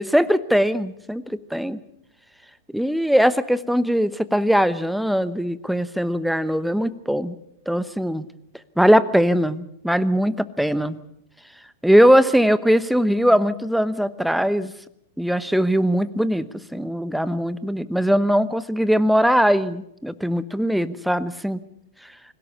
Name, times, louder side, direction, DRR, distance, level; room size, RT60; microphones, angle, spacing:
voice 1, 0.0-1.8 2.7-7.3 7.7-8.3 8.8-11.0 11.8-14.7 15.2-21.6 22.0-22.1, equal, ahead, 16 dB, 1.0 m, -20 dB
25.0 x 17.0 x 7.0 m, 0.78 s
figure-of-eight pair, 95°, 0 cm